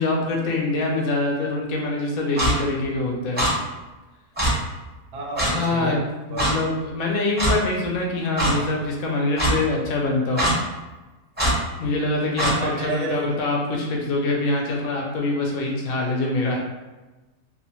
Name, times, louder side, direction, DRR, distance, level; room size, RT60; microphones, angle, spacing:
voice 1, 0.0-3.5 5.4-6.0 6.3-10.4 11.8-16.6, left 2 dB, 75° left, -1 dB, 1.0 m, -24 dB
Clock, 2.4-2.5 3.4-3.5 4.4-4.5 5.4-5.5 6.4-6.5 7.4-7.5 8.4-8.5 9.4-9.5 10.4-10.5 11.4-11.5 12.4-12.5, right 1 dB, 10° right, 0.6 m, -21 dB
voice 2, 5.1-6.0 6.3-6.5 12.6-13.4, right 3 dB, 80° right, -1 dB, 1.1 m, -30 dB
2.7 x 2.0 x 2.9 m, 1.1 s
omnidirectional pair, 1.6 m